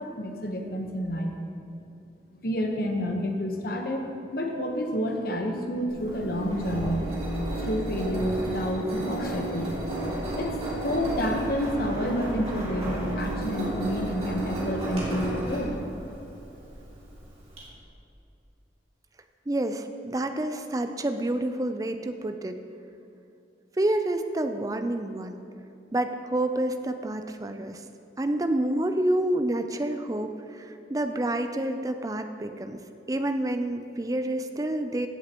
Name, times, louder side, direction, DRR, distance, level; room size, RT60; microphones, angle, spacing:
voice 1, 0.0-1.4 2.4-4.1 4.3-7.0 7.6-10.0 10.4-10.5 10.8-15.7, equal, 55° left, 2 dB, 1.1 m, -29 dB
Engine, 5.9-17.6, right 1 dB, 35° right, 2.5 m, -33 dB
voice 2, 19.5-22.6 23.8-25.4 25.9-27.8 28.2-32.8 33.1-35.1, right 1 dB, 20° right, 7 dB, 0.4 m, -28 dB
16.0 x 7.4 x 3.0 m, 2.8 s
head